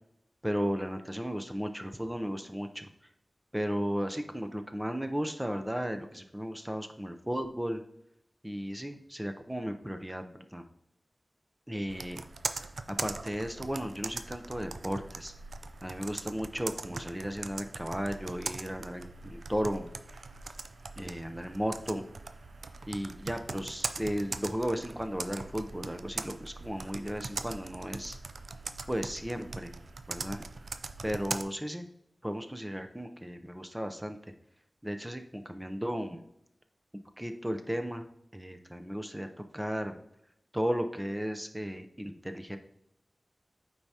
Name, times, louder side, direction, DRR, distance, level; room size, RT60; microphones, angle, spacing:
voice 1, 0.4-2.9 3.5-7.8 8.4-10.6 11.7-12.2 13.0-15.3 15.8-19.9 21.0-22.1 22.9-28.2 28.9-29.7 30.1-30.4 31.0-31.9 32.2-34.2 34.8-36.2 37.2-38.0 38.3-39.3 39.5-40.0 40.5-42.6, equal, 10° right, 7 dB, 0.6 m, -35 dB
Computer keyboard, 11.9-31.4, right 3 dB, 85° right, 0.3 m, -41 dB
8.5 x 4.7 x 2.8 m, 0.80 s
wide cardioid pair, 60°, 0 cm